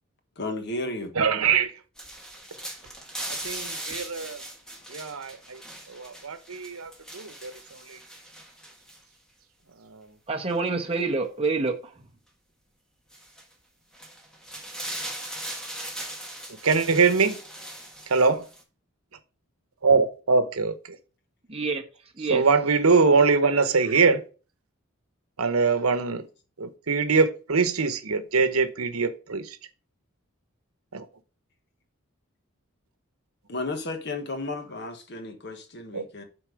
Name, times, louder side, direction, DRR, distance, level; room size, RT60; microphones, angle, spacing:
voice 1, 0.4-1.1 33.5-36.2, left 2 dB, 50° left, 1.3 m, -33 dB
voice 2, 1.2-1.7 3.4-4.4 4.9-5.6 5.9-7.5 7.9-8.0 9.9-10.0 16.6-17.4 18.1-18.5 19.8-20.7 22.3-24.2 25.4-26.3 26.6-29.6 30.9-31.0 35.9-36.0, right 4 dB, 85° right, 1.0 m, -23 dB
sound 1, 2.0-9.0 10.5-10.6 13.1-13.4 13.9-18.6, right 1 dB, 5° left, 1.4 m, -39 dB
voice 3, 10.3-12.0 21.5-21.8 22.2-22.5, right 3 dB, 25° right, 1.2 m, -27 dB
8.0 x 4.4 x 5.1 m
head